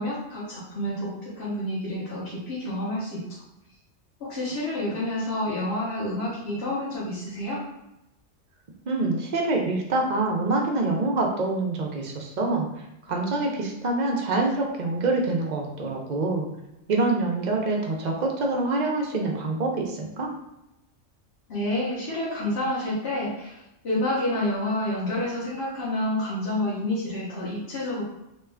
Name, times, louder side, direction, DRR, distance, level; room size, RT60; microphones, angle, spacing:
voice 1, 0.0-3.2 4.2-7.6 21.5-28.0, left 1 dB, 60° left, -8 dB, 1.2 m, -29 dB
voice 2, 8.9-16.5 16.9-20.3, right 2 dB, 50° right, 0 dB, 0.6 m, -26 dB
3.0 x 2.3 x 3.3 m, 0.89 s
omnidirectional pair, 1.3 m